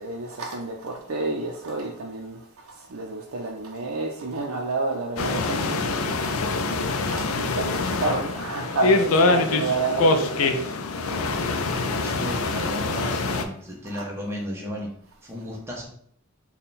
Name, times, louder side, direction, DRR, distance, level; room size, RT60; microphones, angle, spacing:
voice 1, 0.0-6.3 6.9-10.6 11.3-11.4 13.0-13.1 13.8-14.0, right 2 dB, 75° right, 0.5 m, -30 dB
sound 1, 5.2-13.4, left 3 dB, 80° left, 0.4 m, -24 dB
voice 2, 11.8-14.9 15.2-15.9, equal, 10° right, 0.8 m, -34 dB
3.7 x 2.2 x 4.0 m
head